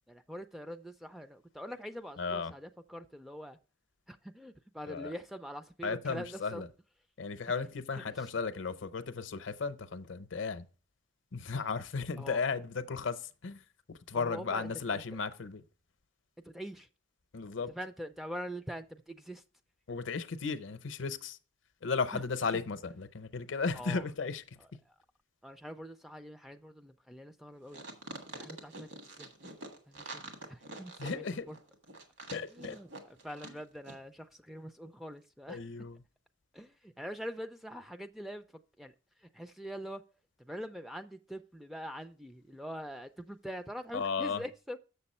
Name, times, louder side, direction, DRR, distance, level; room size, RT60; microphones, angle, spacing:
voice 1, 0.1-3.6 4.1-6.6 8.1-8.3 12.2-12.4 14.1-15.0 16.4-16.9 17.7-19.4 22.1-22.2 22.5-22.6 23.7-24.0 24.9-25.0 25.4-27.8 28.3-29.3 29.9-30.2 30.5-31.6 32.4-35.6 36.5-38.4 38.8-38.9 39.2-40.0 40.4-44.8, equal, ahead, 0.3 m, -44 dB
voice 2, 2.2-2.5 4.9-5.1 5.8-6.7 7.2-10.7 11.3-13.6 13.9-15.6 17.3-17.7 19.9-21.4 21.8-24.4 31.0-31.5 32.3-32.8 33.4-33.6 35.5-36.0 43.9-44.4, left 4 dB, 70° left, 0.6 m, -35 dB
sound 1, 27.7-33.6 33.8-34.0, right 2 dB, 65° right, 1.6 m, -45 dB
7.0 x 6.9 x 4.2 m
head